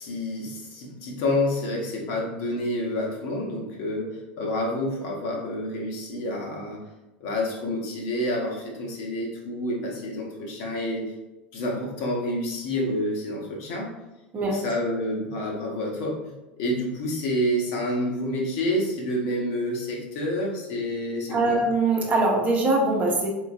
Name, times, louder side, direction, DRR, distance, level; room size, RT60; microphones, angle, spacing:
voice 1, 0.0-6.8 7.2-11.1 11.5-13.9 14.5-21.6, left 1 dB, 50° left, -1 dB, 1.0 m, -28 dB
voice 2, 21.3-23.3, right 2 dB, 25° right, -1 dB, 0.9 m, -22 dB
3.8 x 3.8 x 2.6 m, 1.0 s
figure-of-eight pair, 80°, 6 cm